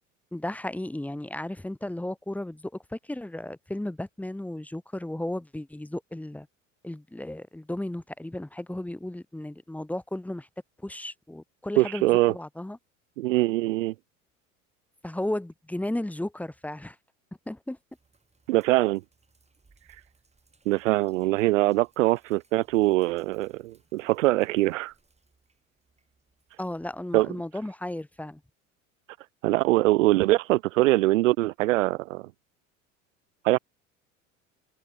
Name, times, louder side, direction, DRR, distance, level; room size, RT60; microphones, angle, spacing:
voice 1, 0.3-6.5 6.8-10.5 10.8-12.8 15.0-17.0 17.5-17.8 26.6-28.4, left 1 dB, 5° left, 1.1 m, -34 dB
voice 2, 11.8-12.3 13.2-13.9 18.5-19.0 20.7-24.9 27.1-27.3 29.4-32.3 33.4-33.6, right 18 dB, 70° right, 0.6 m, -23 dB
Sink (filling or washing), 17.9-27.6, right 3 dB, 15° right, 6.5 m, -66 dB
figure-of-eight pair, 70°, 40 cm